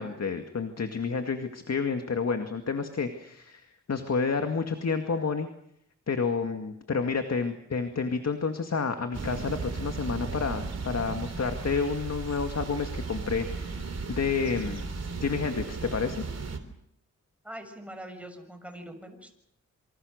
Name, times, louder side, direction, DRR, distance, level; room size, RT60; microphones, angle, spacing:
voice 1, 0.0-5.5 6.1-13.8 14.1-14.9 15.2-16.2, left 5 dB, 55° left, 6 dB, 2.2 m, -30 dB
sound 1, 9.1-16.6, right 4 dB, 55° right, 3.5 m, -35 dB
voice 2, 17.4-19.3, right 1 dB, 5° right, 6 dB, 6.4 m, -43 dB
27.5 x 25.0 x 6.6 m, 0.74 s
wide cardioid pair, 85°, 30 cm